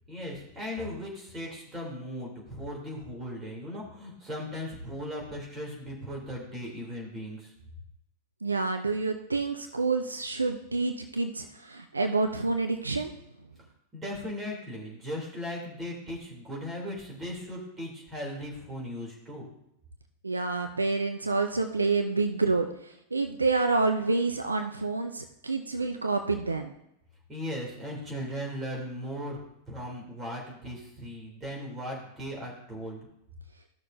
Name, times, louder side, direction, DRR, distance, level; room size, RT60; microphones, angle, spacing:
voice 1, 0.1-7.5 13.9-19.5 27.3-29.4 29.7-33.0, equal, 20° right, -2 dB, 3.3 m, -37 dB
voice 2, 8.4-13.1 20.2-26.7, right 3 dB, 80° right, 6 dB, 0.6 m, -28 dB
14.5 x 6.4 x 2.7 m, 0.80 s
figure-of-eight pair, 90°, 0 cm